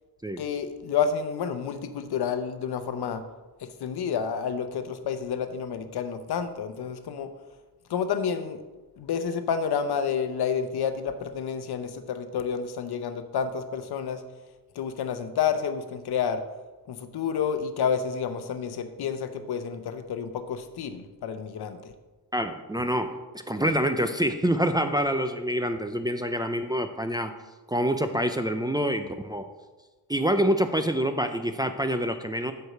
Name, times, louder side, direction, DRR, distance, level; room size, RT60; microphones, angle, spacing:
voice 1, 0.4-3.2 3.6-7.3 7.9-8.6 9.0-14.2 14.7-16.4 16.9-21.9, left 7 dB, 80° left, 9 dB, 0.8 m, -29 dB
voice 2, 22.3-23.2 23.5-27.4 27.7-29.5 30.1-32.5, equal, 10° right, 6 dB, 0.4 m, -26 dB
8.0 x 4.6 x 6.6 m, 1.2 s
wide cardioid pair, 145°, 38 cm